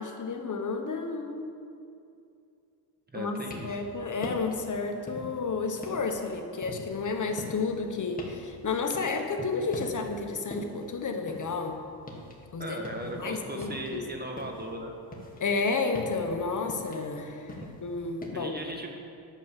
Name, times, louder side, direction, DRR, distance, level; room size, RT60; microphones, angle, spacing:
voice 1, 0.0-1.5 3.1-11.8 12.5-12.8 13.0-14.1 15.4-18.6, left 4 dB, 45° left, 4 dB, 1.1 m, -31 dB
voice 2, 3.1-3.8 12.6-14.9 17.6-17.7 18.3-18.9, right 1 dB, 25° right, 1 dB, 1.5 m, -37 dB
sound 1, 3.3-3.9 4.2-4.6 5.1-5.4 5.8-9.5 9.7-10.2 10.5-12.4 12.7-14.7 15.1-18.3, left 1 dB, 20° left, 1.9 m, -42 dB
10.5 x 6.8 x 7.4 m, 2.5 s
cardioid pair, 100°, 41 cm